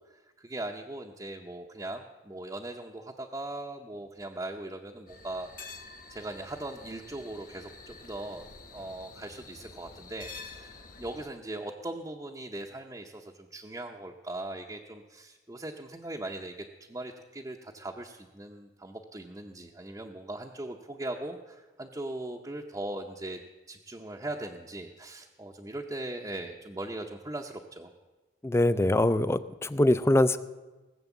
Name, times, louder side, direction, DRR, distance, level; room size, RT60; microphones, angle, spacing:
voice 1, 0.0-5.5 6.1-16.5 16.9-23.4 23.7-27.9, right 1 dB, 20° right, 0 dB, 0.7 m, -39 dB
sound 1, 5.1-11.3, left 4 dB, 50° left, 1.7 m, -48 dB
voice 2, 28.4-30.4, left 1 dB, 15° left, 14 dB, 0.4 m, -23 dB
18.5 x 7.8 x 7.2 m, 1.2 s
head